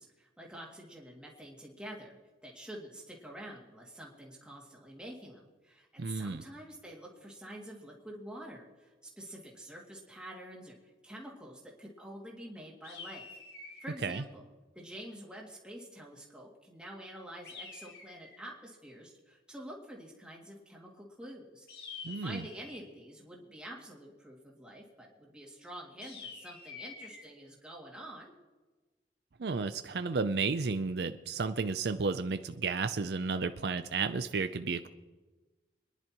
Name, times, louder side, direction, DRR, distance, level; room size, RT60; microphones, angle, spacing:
voice 1, 0.0-2.2 2.4-10.8 11.0-13.3 13.8-14.4 14.7-21.7 22.0-28.3, right 1 dB, 5° right, -2 dB, 2.3 m, -47 dB
voice 2, 6.0-6.4 14.0-14.2 22.0-22.4 29.4-34.9, right 4 dB, 60° right, 10 dB, 0.5 m, -32 dB
sound 1, 12.8-14.0 17.4-18.5 21.7-22.9 26.0-27.2, left 4 dB, 60° left, 2.4 m, -47 dB
25.5 x 11.0 x 3.0 m, 1.2 s
head